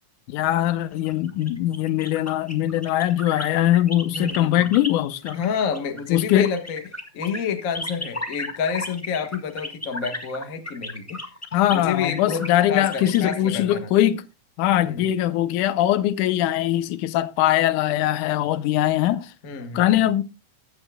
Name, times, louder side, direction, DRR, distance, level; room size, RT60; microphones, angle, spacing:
voice 1, 0.3-5.4 6.1-6.5 11.5-14.2 14.6-19.3 19.7-20.2, left 13 dB, 85° left, 2.3 m, -21 dB
sound 1, 0.9-4.9 5.3-13.8, left 1 dB, 15° left, 0.5 m, -35 dB
voice 2, 4.1-4.7 5.3-6.8 7.1-11.3 11.7-13.9 14.8-15.1 19.4-19.9, left 6 dB, 45° left, 1.1 m, -29 dB
15.0 x 11.0 x 2.2 m
omnidirectional pair, 3.5 m